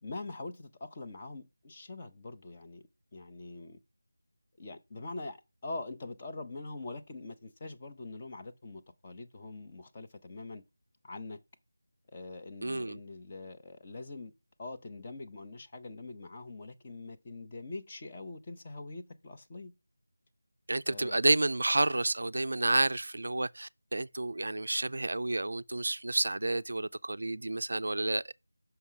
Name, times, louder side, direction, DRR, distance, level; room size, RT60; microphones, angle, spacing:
voice 1, 0.0-3.8 4.6-10.6 11.0-11.4 12.1-14.3 14.6-19.7 20.9-21.2, left 3 dB, 15° left, 0.5 m, -43 dB
voice 2, 12.6-13.0 20.7-28.3, right 2 dB, 50° right, 0.3 m, -30 dB
5.6 x 4.8 x 5.6 m
figure-of-eight pair, 180°, 0 cm